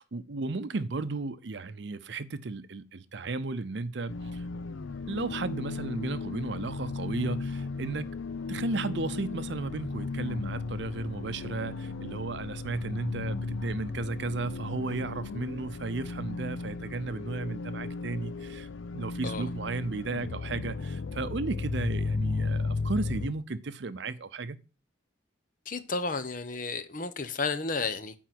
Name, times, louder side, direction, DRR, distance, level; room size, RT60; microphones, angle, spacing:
voice 1, 0.0-4.5 5.1-8.1 8.5-24.6, right 3 dB, 65° right, 0.6 m, -34 dB
sound 1, 4.1-23.3, left 3 dB, 85° left, 0.5 m, -35 dB
voice 2, 25.7-28.1, left 4 dB, 45° left, 0.8 m, -32 dB
9.4 x 4.0 x 6.0 m
head